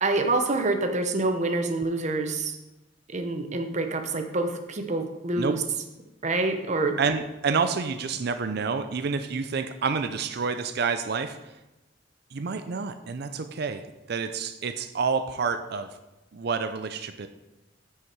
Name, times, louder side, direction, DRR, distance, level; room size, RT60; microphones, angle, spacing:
voice 1, 0.0-2.6 3.1-5.6 6.2-7.0, right 2 dB, 40° right, 6 dB, 0.9 m, -26 dB
voice 2, 7.0-11.4 12.3-15.9 16.3-17.3, right 5 dB, 60° right, 10 dB, 0.5 m, -28 dB
9.4 x 6.3 x 4.6 m, 1.0 s
head